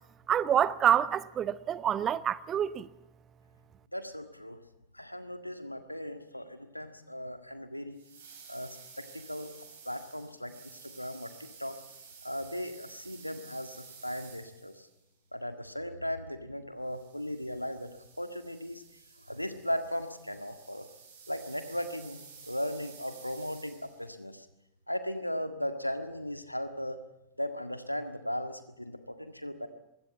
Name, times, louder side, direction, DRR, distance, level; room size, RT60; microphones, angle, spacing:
voice 1, 0.3-2.9, right 9 dB, 25° right, 0.8 m, -27 dB
voice 2, 3.9-4.6 4.9-8.0 8.5-11.8 12.2-14.9 15.3-18.8 19.2-20.9 21.3-24.5 24.9-27.0 27.4-29.7, equal, 90° left, 1.7 m, -37 dB
sound 1, 7.9-15.0 16.8-24.1, right 6 dB, 65° right, 7.9 m, -53 dB
21.5 x 16.5 x 8.3 m
figure-of-eight pair, 90°, 0 cm